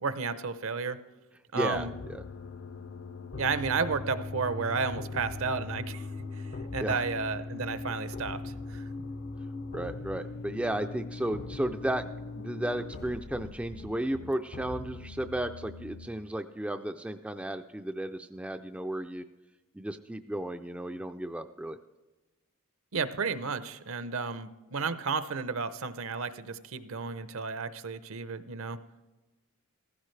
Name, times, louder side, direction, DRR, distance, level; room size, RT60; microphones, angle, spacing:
voice 1, 0.0-1.0 1.5-1.9 3.4-6.1 6.7-8.8 22.9-28.8, right 4 dB, 65° right, 12 dB, 0.7 m, -32 dB
voice 2, 1.5-2.2 6.8-7.0 7.9-8.0 9.7-12.0 12.4-19.3 19.7-21.8, right 1 dB, 5° right, 7 dB, 0.3 m, -34 dB
sound 1, 1.7-16.1, left 3 dB, 50° left, 0.6 m, -40 dB
15.5 x 14.5 x 3.3 m, 1.2 s
head